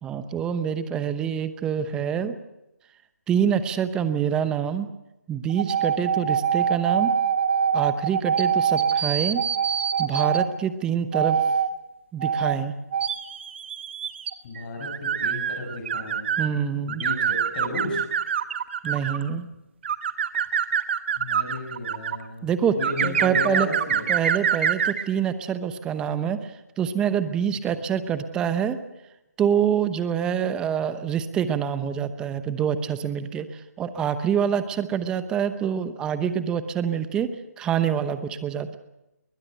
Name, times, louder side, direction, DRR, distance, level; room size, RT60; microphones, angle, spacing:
voice 1, 0.0-2.4 3.3-4.9 5.3-7.1 7.7-9.4 10.0-11.4 12.1-12.8 16.4-17.0 18.8-19.5 22.4-23.7 24.1-28.8 29.4-37.3 37.6-38.8, right 8 dB, 10° right, 12 dB, 0.9 m, -26 dB
sound 1, 5.5-10.5 11.1-11.7 12.2-12.6 12.9-16.5 16.9-19.3 19.8-22.2 22.8-25.0, right 7 dB, 40° right, 1.2 m, -24 dB
voice 2, 14.4-16.3 16.9-18.0 21.2-22.5 22.8-24.1, left 2 dB, 30° left, 3 dB, 6.7 m, -34 dB
21.0 x 20.5 x 8.0 m, 0.92 s
figure-of-eight pair, 160°, 9 cm